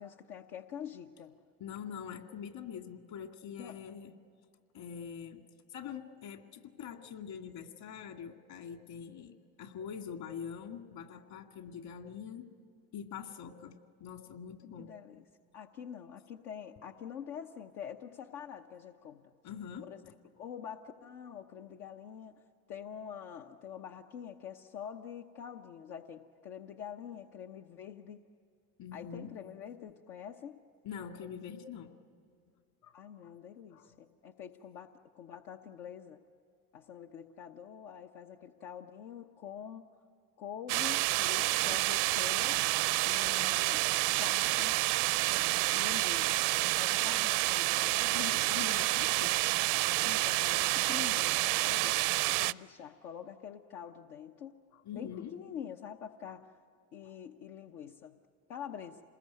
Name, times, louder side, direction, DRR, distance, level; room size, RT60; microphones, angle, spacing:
voice 1, 0.0-1.4 3.6-3.8 14.8-15.2 15.5-19.3 19.9-20.0 20.3-28.2 28.9-30.6 32.9-34.9 35.1-36.2 36.7-39.9 40.4-42.6 43.0-44.8 45.7-48.4 50.0-54.6 54.9-56.6 56.9-58.2 58.5-59.0, left 8 dB, 80° left, 3 dB, 1.1 m, -46 dB
voice 2, 1.6-4.1 4.7-5.4 5.7-12.5 12.9-14.9 19.4-19.9 28.8-29.3 30.8-31.9 32.8-33.0 33.2-33.4 33.7-34.0 48.1-49.3 54.7-55.3 57.0-57.1, left 8 dB, 55° left, 5 dB, 2.2 m, -44 dB
sound 1, 40.7-52.5, right 21 dB, 65° right, 0.6 m, -29 dB
27.5 x 20.5 x 9.4 m, 2.4 s
hypercardioid pair, 85°, 44 cm